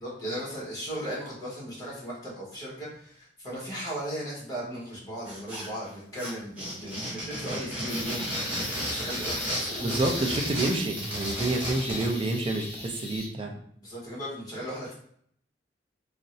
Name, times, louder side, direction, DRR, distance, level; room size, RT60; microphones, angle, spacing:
voice 1, 0.0-10.0 13.8-14.9, equal, 20° left, -6 dB, 1.2 m, -37 dB
sound 1, 5.3-5.9 6.2-12.1, equal, 10° right, 1.0 m, -33 dB
sound 2, 7.9-13.3, left 1 dB, 35° left, 0.9 m, -38 dB
voice 2, 9.8-13.6, right 2 dB, 30° right, 2 dB, 0.4 m, -28 dB
3.6 x 2.1 x 2.6 m, 0.65 s
head